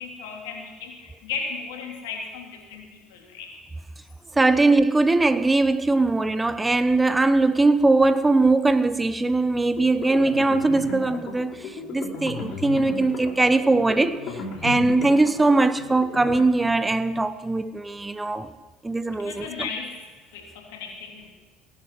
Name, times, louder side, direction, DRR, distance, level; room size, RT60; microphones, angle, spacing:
voice 1, 0.0-3.5 19.1-21.3, left 5 dB, 80° left, 2.9 m, -36 dB
voice 2, 4.4-14.2 14.6-18.5 18.8-19.7, right 2 dB, 15° right, 0.9 m, -21 dB
sound 1, 9.8-16.4, left 4 dB, 60° left, 3.2 m, -35 dB
17.5 x 11.0 x 6.1 m
hypercardioid pair, 75°, 0 cm